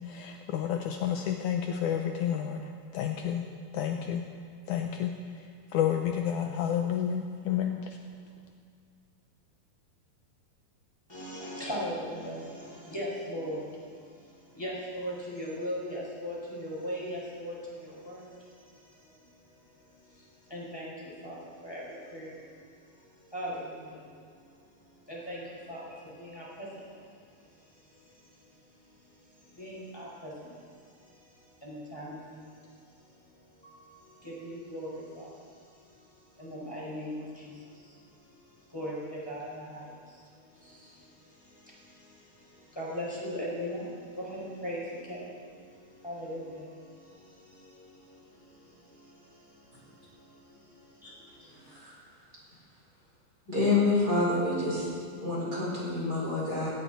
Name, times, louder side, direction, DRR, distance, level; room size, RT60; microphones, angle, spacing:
voice 1, 0.0-2.6 2.9-3.5 3.7-4.2 4.7-5.1 5.7-7.8, left 9 dB, 85° left, 4 dB, 1.8 m, -30 dB
voice 2, 11.1-19.5 19.9-24.4 25.0-27.1 27.5-30.7 31.0-32.7 33.0-33.2 33.6-36.1 36.4-51.8, equal, 5° left, -6 dB, 4.8 m, -41 dB
voice 3, 53.5-54.9 55.2-56.7, left 3 dB, 25° right, -6 dB, 4.6 m, -27 dB
18.0 x 17.0 x 4.1 m, 2.1 s
omnidirectional pair, 4.4 m